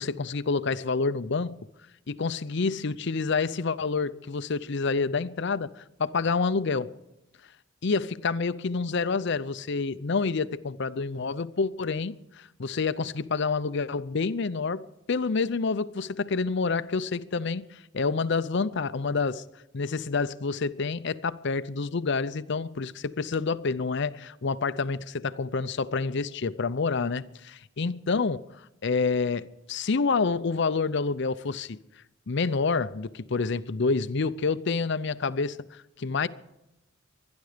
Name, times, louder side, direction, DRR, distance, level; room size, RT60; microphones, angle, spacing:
voice 1, 0.0-1.6 2.1-6.9 7.8-19.4 19.7-28.4 28.8-31.8 32.3-36.3, left 4 dB, 60° left, 0.6 m, -28 dB
24.0 x 10.5 x 5.0 m
head